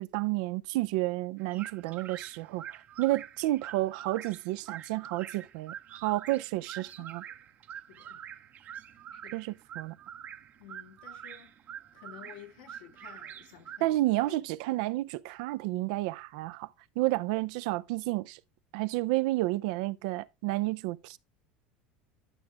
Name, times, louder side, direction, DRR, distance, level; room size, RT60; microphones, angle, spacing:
voice 1, 0.0-7.2 9.3-10.0 13.8-16.7 17.0-18.4 18.7-21.2, right 18 dB, 75° right, 0.5 m, -31 dB
sound 1, 1.4-13.8, right 9 dB, 40° right, 0.8 m, -46 dB
voice 2, 6.8-7.1 7.7-8.2 8.9-9.5 10.6-11.5 11.9-14.0 14.2-14.4, left 9 dB, 90° left, 2.2 m, -52 dB
11.0 x 6.1 x 3.5 m
supercardioid pair, 110°, 4 cm